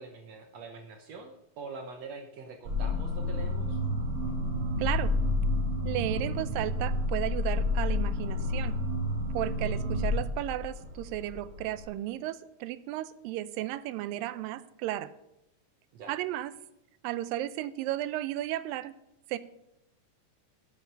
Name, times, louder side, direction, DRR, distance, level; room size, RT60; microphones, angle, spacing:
voice 1, 0.0-3.8 9.6-9.7 15.9-16.1, right 4 dB, 65° right, 5 dB, 1.7 m, -44 dB
sound 1, 2.6-11.8, left 2 dB, 45° right, 2.9 m, -30 dB
voice 2, 4.8-5.1 5.8-8.8 9.3-15.1 16.1-16.5 17.0-18.9 19.3-19.4, right 14 dB, 90° right, 15 dB, 2.3 m, -34 dB
11.0 x 9.1 x 5.5 m, 0.87 s
omnidirectional pair, 3.9 m